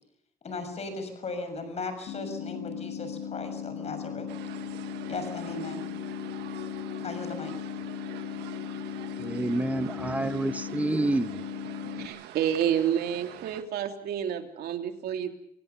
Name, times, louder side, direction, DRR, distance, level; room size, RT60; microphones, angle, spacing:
voice 1, 0.4-4.3 5.1-5.8 7.0-7.5, left 3 dB, 40° left, 6.7 m, -37 dB
sound 1, 2.1-12.1, left 7 dB, 70° left, 5.1 m, -37 dB
sound 2, 4.1-11.9, left 12 dB, 90° left, 3.1 m, -48 dB
sound 3, 4.3-13.6, right 13 dB, 85° right, 1.7 m, -46 dB
voice 2, 9.2-11.5 12.0-12.1, right 2 dB, 10° right, 1.1 m, -29 dB
voice 3, 12.0-15.3, right 9 dB, 65° right, 3.0 m, -29 dB
28.0 x 17.5 x 6.9 m
cardioid pair, 110°, 17 cm